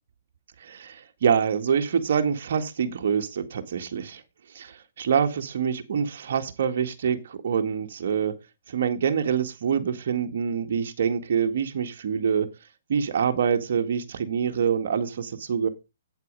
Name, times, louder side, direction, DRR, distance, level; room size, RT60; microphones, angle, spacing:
voice 1, 0.6-4.2 4.5-8.3 8.7-12.5 12.9-15.7, right 7 dB, 60° right, 1.8 m, -25 dB
8.6 x 8.1 x 5.4 m
hypercardioid pair, 140°, 0 cm